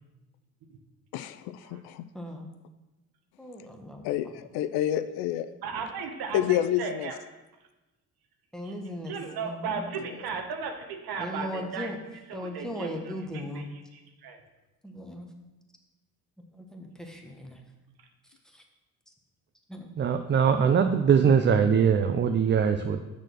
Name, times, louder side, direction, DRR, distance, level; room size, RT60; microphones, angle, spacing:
voice 1, 1.1-2.1 4.0-5.5 6.3-7.1 10.0-10.1, left 12 dB, 70° left, 12 dB, 0.5 m, -28 dB
voice 2, 2.1-2.5 3.4-4.0 8.5-9.1 9.4-9.9 11.2-12.0 12.3-13.7 14.8-15.3 16.5-17.6 18.5-18.6 19.7-19.9, left 1 dB, ahead, 2 dB, 1.3 m, -38 dB
voice 3, 5.6-7.1 8.6-8.7 9.1-11.9 12.3-14.4, right 5 dB, 65° right, 4 dB, 1.2 m, -36 dB
voice 4, 20.0-23.0, right 7 dB, 30° right, 7 dB, 0.5 m, -22 dB
6.3 x 4.3 x 6.1 m, 1.1 s
hypercardioid pair, 55°, 40 cm